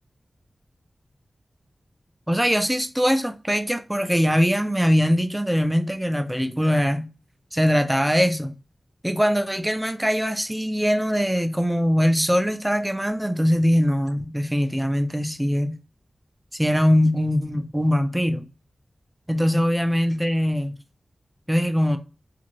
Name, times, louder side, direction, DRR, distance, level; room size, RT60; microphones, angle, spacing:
voice 1, 2.3-7.1 7.5-8.5 9.0-15.8 16.5-18.4 19.3-20.7 21.5-22.0, equal, 10° right, 0.5 m, -22 dB
2.5 x 2.5 x 3.0 m
cardioid pair, 40°, 0 cm